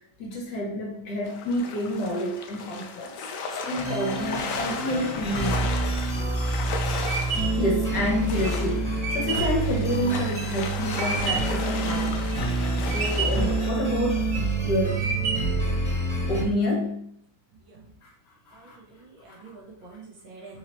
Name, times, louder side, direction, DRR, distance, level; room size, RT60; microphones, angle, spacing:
voice 1, 0.2-3.1 3.7-5.6 7.6-12.3 12.9-14.2 14.6-15.1 16.3-17.1 18.6-18.8 19.3-19.4, left 1 dB, 65° left, -1 dB, 1.6 m, -28 dB
sound 1, 1.2-13.7, left 4 dB, 85° left, 0.7 m, -35 dB
sound 2, 3.8-16.4, right 2 dB, 5° left, 1.2 m, -27 dB
sound 3, 6.5-11.6 12.1-12.6 12.9-13.6 14.1-14.6 15.0-15.7, right 5 dB, 65° right, 0.8 m, -31 dB
voice 2, 18.5-20.6, right 4 dB, 85° right, -3 dB, 2.0 m, -47 dB
4.6 x 2.9 x 3.0 m, 0.68 s
omnidirectional pair, 2.0 m